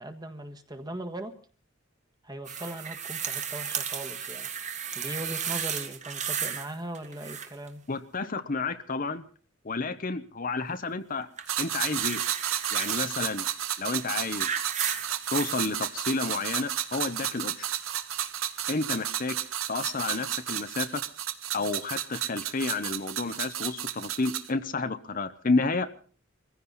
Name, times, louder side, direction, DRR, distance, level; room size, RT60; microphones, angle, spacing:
voice 1, 0.0-1.3 2.2-4.5 4.9-7.8, right 1 dB, 20° right, 7 dB, 1.6 m, -39 dB
sound 1, 2.4-6.7 6.9-7.7 11.4-13.1 13.9-15.7 16.5-16.6, right 8 dB, 35° right, 1.7 m, -34 dB
voice 2, 7.9-9.2 9.6-11.3 11.6-12.2 12.7-13.5 13.8-14.5 15.3-17.7 18.7-19.4 19.7-21.0 21.5-25.9, left 3 dB, 40° left, 10 dB, 0.9 m, -30 dB
sound 2, 11.5-24.5, right 11 dB, 90° right, 1.3 m, -32 dB
22.0 x 15.5 x 4.1 m, 0.42 s
head